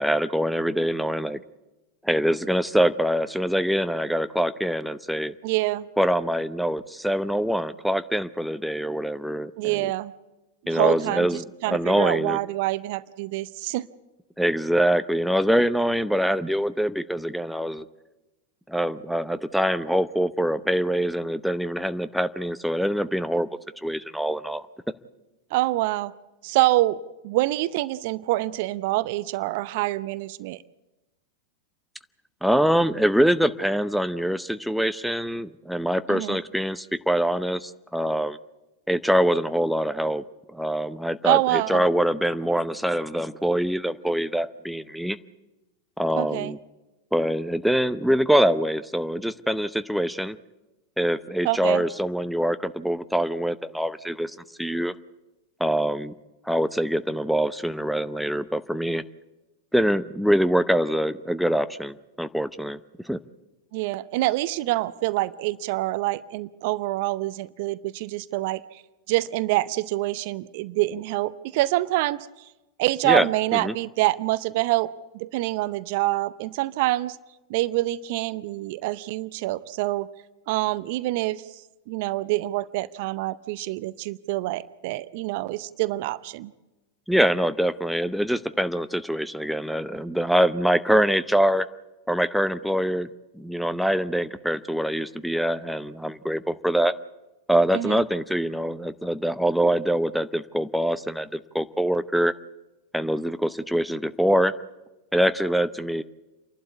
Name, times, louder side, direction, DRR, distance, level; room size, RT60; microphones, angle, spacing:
voice 1, 0.0-1.4 2.0-5.3 6.0-9.9 10.7-12.4 14.4-17.9 18.7-23.5 23.8-24.6 32.4-38.4 38.9-40.2 40.5-45.2 46.0-46.6 47.1-50.4 51.0-54.3 54.6-54.9 55.6-56.1 56.5-59.0 59.7-62.8 63.0-63.2 73.0-73.3 73.6-73.7 87.1-91.7 92.1-93.1 93.3-96.9 97.5-102.3 102.9-104.5 105.1-106.0, equal, ahead, 12 dB, 0.7 m, -24 dB
voice 2, 5.4-5.9 9.6-10.1 10.7-13.9 25.5-26.1 26.4-27.0 27.2-30.6 36.1-36.4 41.2-41.8 46.2-46.5 51.4-51.8 63.7-68.8 69.1-72.3 72.8-77.2 77.5-80.1 80.5-81.4 81.9-86.5 97.7-98.0, right 18 dB, 55° right, 17 dB, 0.6 m, -26 dB
28.0 x 12.0 x 8.4 m, 1.1 s
figure-of-eight pair, 95°, 0 cm